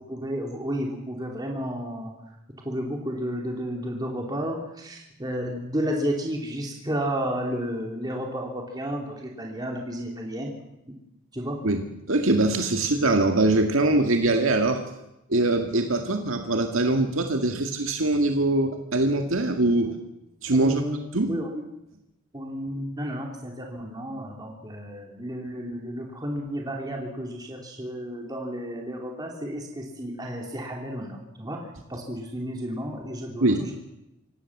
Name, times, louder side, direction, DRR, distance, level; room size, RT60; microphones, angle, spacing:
voice 1, 0.0-2.1 2.6-10.5 11.3-11.8 19.8-19.9 20.5-21.6 22.3-33.7, equal, 20° right, 0 dB, 3.1 m, -32 dB
voice 2, 12.1-14.8 15.3-19.9 20.4-20.8 21.1-21.3 33.4-33.6, right 2 dB, 75° right, 5 dB, 2.0 m, -22 dB
26.0 x 17.5 x 7.3 m, 0.89 s
head